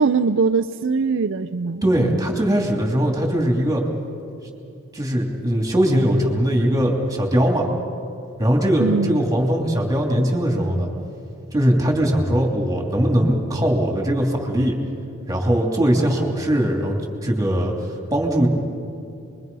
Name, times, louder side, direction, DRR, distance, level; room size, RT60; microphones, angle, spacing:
voice 1, 0.0-1.8 8.8-9.2, right 4 dB, 65° right, 7 dB, 0.6 m, -21 dB
voice 2, 1.8-3.8 4.9-7.7 8.4-10.9 11.5-14.8 15.3-18.5, equal, 15° right, 1 dB, 2.9 m, -20 dB
28.5 x 22.5 x 5.4 m, 2.5 s
head